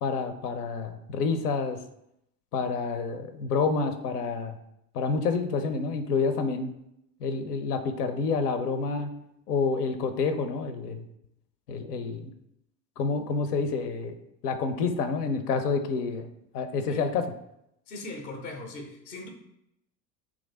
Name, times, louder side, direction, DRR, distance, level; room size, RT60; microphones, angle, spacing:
voice 1, 0.0-1.8 2.5-4.6 4.9-6.7 7.2-9.1 9.5-11.0 11.7-12.3 13.0-14.1 14.4-16.3 16.5-17.2, left 4 dB, 70° left, 8 dB, 0.5 m, -28 dB
voice 2, 17.9-19.3, left 2 dB, 20° left, 4 dB, 0.4 m, -39 dB
3.0 x 2.5 x 3.9 m, 0.79 s
figure-of-eight pair, 70°, 50 cm